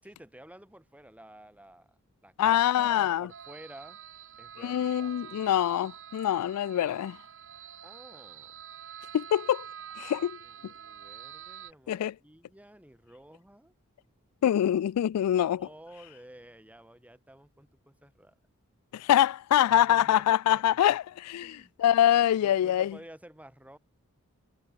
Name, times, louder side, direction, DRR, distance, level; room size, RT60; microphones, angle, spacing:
voice 1, 0.0-4.0 4.4-5.6 7.8-8.5 10.0-13.7 15.6-18.3 19.7-20.6 20.9-21.0 21.4-21.7 22.4-23.8, right 1 dB, 5° right, 5.2 m, -51 dB
voice 2, 2.4-3.3 4.6-7.2 9.1-9.7 10.0-10.4 11.9-12.1 14.4-15.7 18.9-23.0, left 11 dB, 85° left, 0.3 m, -25 dB
sound 1, 3.3-11.7, right 9 dB, 60° right, 1.3 m, -47 dB
head